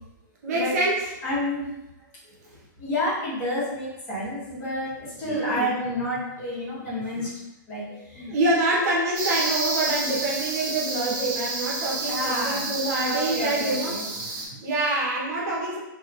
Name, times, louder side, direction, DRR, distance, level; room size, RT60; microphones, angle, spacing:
voice 1, 0.4-1.0 5.3-5.7 8.3-14.0 14.6-15.8, right 2 dB, 50° right, -4 dB, 1.0 m, -26 dB
voice 2, 1.2-1.8 2.8-7.3 7.7-8.3 12.1-12.7 13.1-14.6, left 1 dB, 25° left, -9 dB, 1.5 m, -30 dB
sound 1, 9.1-14.5, right 3 dB, 30° right, 0.6 m, -30 dB
3.1 x 2.8 x 2.5 m, 0.91 s
hypercardioid pair, 150°, 11 cm